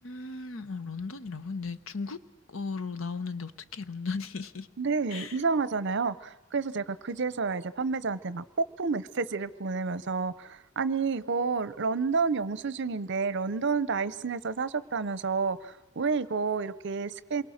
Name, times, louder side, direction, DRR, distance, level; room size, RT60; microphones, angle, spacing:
voice 1, 0.0-2.2 2.5-4.7 5.1-5.4, left 4 dB, 85° left, 1.0 m, -36 dB
voice 2, 4.8-17.4, right 4 dB, 60° right, 0.7 m, -30 dB
28.0 x 23.0 x 6.5 m
head